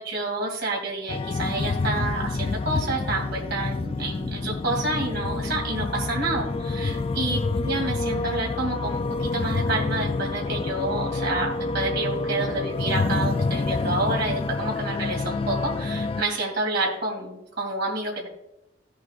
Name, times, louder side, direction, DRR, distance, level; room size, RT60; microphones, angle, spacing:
voice 1, 0.0-7.4 7.6-18.3, right 2 dB, 55° right, -2 dB, 2.9 m, -29 dB
sound 1, 1.1-16.2, left 3 dB, 30° left, 0.3 m, -28 dB
16.0 x 8.0 x 2.5 m, 0.91 s
head